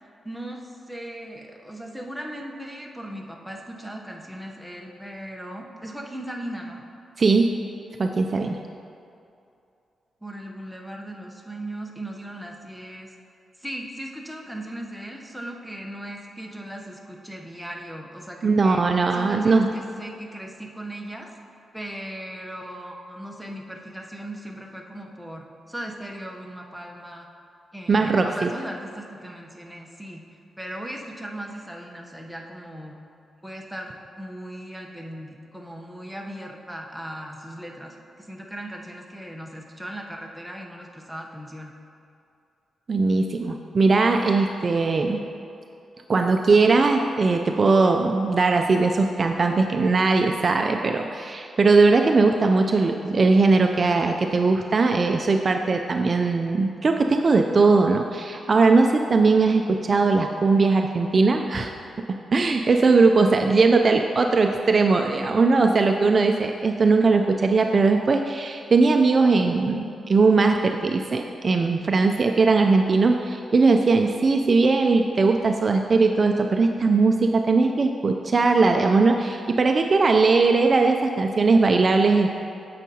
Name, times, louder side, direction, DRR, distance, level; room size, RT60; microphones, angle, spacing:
voice 1, 0.2-6.8 10.2-13.1 13.6-18.8 19.1-21.3 21.7-27.3 27.7-30.2 30.6-33.0 33.4-41.7, right 1 dB, ahead, 0 dB, 0.8 m, -37 dB
voice 2, 7.2-7.5 8.0-8.6 18.4-19.7 27.9-28.5 42.9-45.2 46.1-61.7 62.3-82.3, right 3 dB, 40° right, 4 dB, 0.4 m, -19 dB
9.1 x 7.3 x 2.8 m, 2.6 s
cardioid pair, 95°, 0 cm